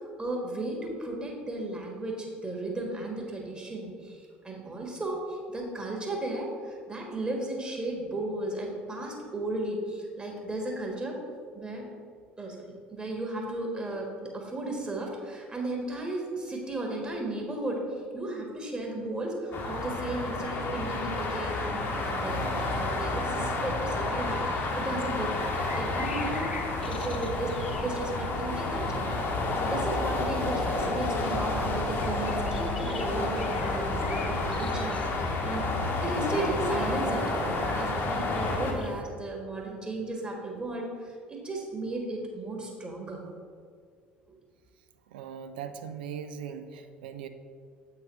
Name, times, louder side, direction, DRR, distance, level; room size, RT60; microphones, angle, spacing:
voice 1, 0.2-11.2 11.5-11.8 12.4-17.8 18.1-29.0 29.6-35.7 36.0-43.2 44.3-44.4, right 2 dB, 20° right, 0 dB, 1.5 m, -35 dB
sound 1, 19.5-38.7, left 2 dB, 40° left, 1.0 m, -30 dB
sound 2, 24.7-39.0, left 4 dB, 80° left, 0.4 m, -44 dB
voice 2, 45.1-47.3, right 7 dB, 65° right, 8 dB, 0.4 m, -39 dB
7.8 x 4.1 x 4.1 m, 2.1 s
figure-of-eight pair, 60°, 6 cm